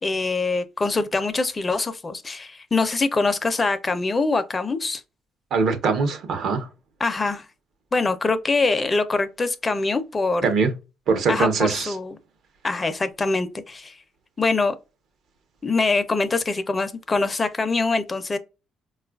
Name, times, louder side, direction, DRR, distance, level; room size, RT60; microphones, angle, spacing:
voice 1, 0.0-5.0 7.0-7.4 7.9-10.5 11.3-12.2 12.6-14.0 14.4-14.7 15.6-18.4, left 3 dB, 30° left, 0.5 m, -24 dB
voice 2, 5.5-6.7 10.4-10.7 11.1-11.9, right 4 dB, 70° right, 0.8 m, -22 dB
4.2 x 2.4 x 2.3 m
supercardioid pair, 65°, 0 cm